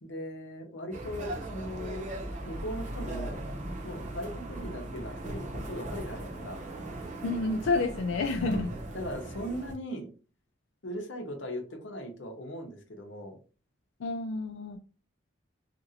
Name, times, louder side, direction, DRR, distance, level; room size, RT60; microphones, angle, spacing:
voice 1, 0.0-2.1 2.4-3.4 3.8-6.7 8.4-8.6 8.9-10.1 10.8-13.4, equal, 65° left, 0.8 m, -39 dB
sound 1, 0.9-9.7, right 1 dB, 40° right, 0.6 m, -38 dB
voice 2, 7.2-8.7 14.0-14.8, left 3 dB, 90° left, 0.3 m, -29 dB
2.9 x 2.6 x 2.7 m
head